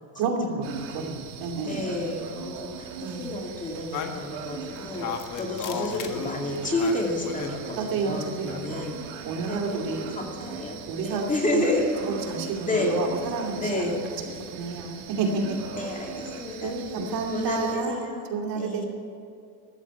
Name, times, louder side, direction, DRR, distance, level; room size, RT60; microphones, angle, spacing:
voice 1, 0.2-1.8 3.0-3.3 7.8-8.7 9.2-10.1 10.9-11.6 12.0-13.9 14.2-15.6 16.6-18.0 18.3-18.9, right 4 dB, 55° right, 2 dB, 2.7 m, -30 dB
sound 1, 0.6-17.7, right 6 dB, 75° right, 2.7 m, -40 dB
voice 2, 1.6-5.1 5.4-9.0 9.5-11.9 12.6-13.0 13.6-14.0 15.8-18.3 18.6-18.9, left 2 dB, 20° left, 1 dB, 2.4 m, -30 dB
sound 2, 3.9-7.6 8.3-9.0, left 7 dB, 50° left, 1.6 m, -35 dB
15.0 x 12.0 x 7.0 m, 2.5 s
cardioid pair, 135°, 41 cm